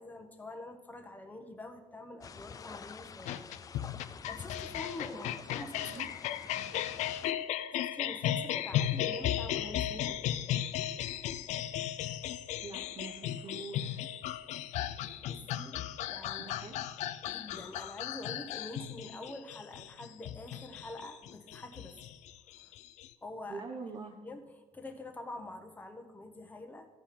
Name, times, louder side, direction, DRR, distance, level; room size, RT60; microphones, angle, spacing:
voice 1, 0.0-6.0 7.7-10.2 15.2-15.8 16.1-16.5 17.2-21.9 22.6-22.8 23.2-23.6 24.2-26.9, left 2 dB, 15° left, 4 dB, 1.1 m, -46 dB
sound 1, 2.2-7.3, left 6 dB, 30° left, 0.4 m, -48 dB
sound 2, 3.3-23.1, left 11 dB, 85° left, 0.5 m, -36 dB
voice 2, 5.6-6.1 6.5-6.7 12.6-14.1 16.4-16.8 23.5-24.2, right 4 dB, 45° right, 2 dB, 1.0 m, -45 dB
14.0 x 5.7 x 4.3 m, 1.4 s
cardioid pair, 125°, 12 cm